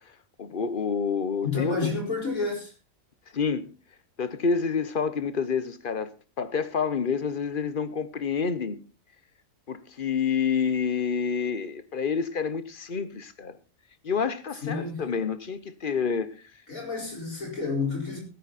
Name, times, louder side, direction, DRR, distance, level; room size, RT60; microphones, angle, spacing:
voice 1, 0.4-1.9 3.3-3.7 4.2-6.1 6.4-8.8 9.7-13.5 14.0-16.3, left 6 dB, 40° left, 1.1 m, -28 dB
voice 2, 1.4-2.7 14.6-15.0 16.7-18.2, left 4 dB, 90° left, 5.4 m, -30 dB
17.0 x 9.9 x 4.2 m
omnidirectional pair, 1.4 m